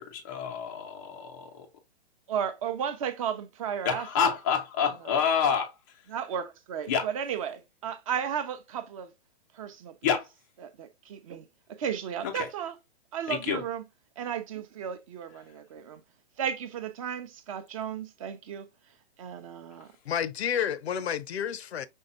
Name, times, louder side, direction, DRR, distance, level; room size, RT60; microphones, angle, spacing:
voice 1, 0.0-1.7 3.9-5.7 6.9-7.1 10.0-10.2 12.2-12.3 13.3-13.6, left 7 dB, 20° left, 0.4 m, -28 dB
voice 2, 2.3-4.3 4.8-5.2 6.1-9.1 9.5-10.1 10.6-11.4 11.8-12.8 13.1-13.8 14.2-16.0 16.4-18.7 19.2-19.9, right 8 dB, 30° right, 0.6 m, -34 dB
voice 3, 20.1-21.9, left 8 dB, 75° left, 0.7 m, -30 dB
5.5 x 3.3 x 2.4 m
hypercardioid pair, 150°, 32 cm